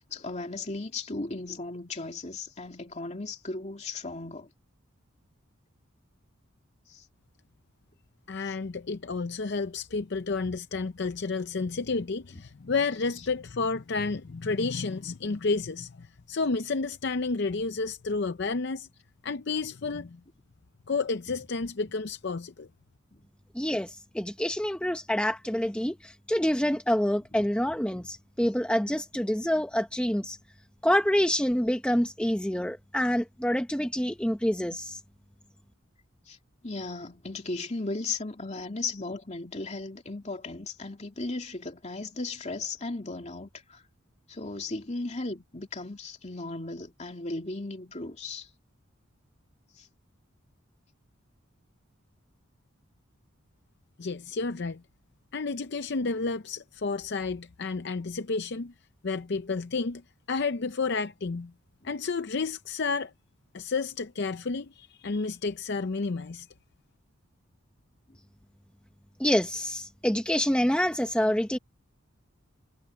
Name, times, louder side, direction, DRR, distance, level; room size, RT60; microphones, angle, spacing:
voice 1, 0.1-4.5 6.9-7.0 8.5-8.6 10.4-10.6 23.1-23.3 27.3-28.1 36.3-36.4 36.6-43.8 44.3-48.5 49.8-49.9, left 3 dB, 35° left, 2.7 m, -36 dB
voice 2, 8.3-18.9 19.2-20.2 20.9-22.7 54.0-54.8 55.3-58.7 59.0-60.0 60.3-61.5 61.8-63.1 63.5-66.5, left 4 dB, 55° left, 0.6 m, -31 dB
voice 3, 23.5-30.4 30.8-35.0 69.2-71.6, equal, 5° left, 0.9 m, -27 dB
head